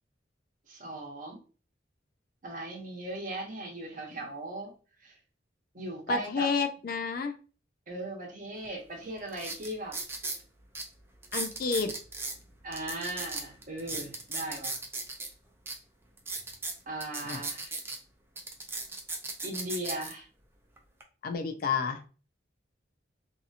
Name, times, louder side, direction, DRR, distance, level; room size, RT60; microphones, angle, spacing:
voice 1, 0.7-1.4 2.4-4.7 5.0-5.1 5.7-6.5 7.9-9.9 12.6-14.8 16.9-17.7 19.4-20.3, right 1 dB, 45° right, 0 dB, 0.9 m, -38 dB
voice 2, 6.1-7.3 11.3-11.9 17.2-17.4 21.2-22.0, left 5 dB, 50° left, 7 dB, 0.4 m, -30 dB
sound 1, 8.6-8.7 9.3-10.4 10.7-10.8 11.2-12.4 12.7-15.3 15.7-15.8 16.2-18.0 18.4-20.1 20.8-21.0, right 3 dB, 15° right, 0.4 m, -36 dB
2.8 x 2.7 x 2.4 m, 0.37 s
head